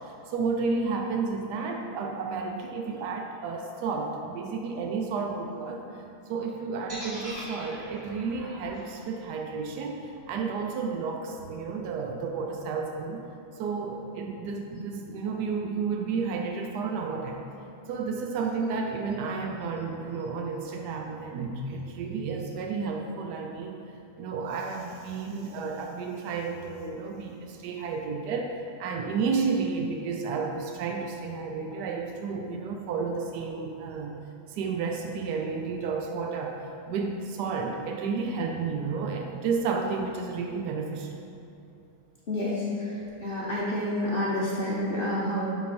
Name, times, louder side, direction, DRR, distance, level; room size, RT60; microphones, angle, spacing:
voice 1, 0.3-5.9 6.3-13.3 13.6-17.4 17.9-23.8 24.2-28.5 28.8-34.2 34.5-41.1, right 4 dB, 85° right, 3 dB, 0.9 m, -31 dB
sound 1, 6.9-10.9, equal, 30° right, 2.2 m, -43 dB
voice 2, 42.3-42.6 43.2-45.5, left 1 dB, 60° left, -7 dB, 0.5 m, -28 dB
11.5 x 4.0 x 4.3 m, 2.7 s
omnidirectional pair, 2.4 m